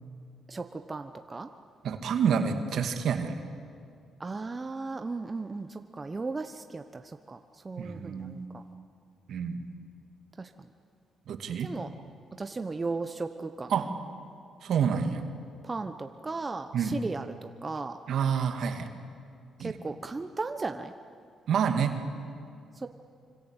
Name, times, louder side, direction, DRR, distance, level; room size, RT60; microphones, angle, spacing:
voice 1, 0.5-1.5 4.2-7.0 7.3-7.4 7.6-8.6 10.4-10.5 11.6-11.9 12.4-13.8 15.6-18.0 19.6-20.9 22.8-22.9, right 3 dB, 25° right, 7 dB, 1.0 m, -36 dB
voice 2, 1.8-3.4 7.8-8.5 9.3-9.6 11.3-11.7 13.7-13.9 14.6-15.2 16.7-17.0 18.1-18.9 19.6-19.8 21.5-22.0, right 7 dB, 70° right, 6 dB, 2.3 m, -28 dB
25.5 x 25.0 x 8.2 m, 2.3 s
cardioid pair, 90°, 0 cm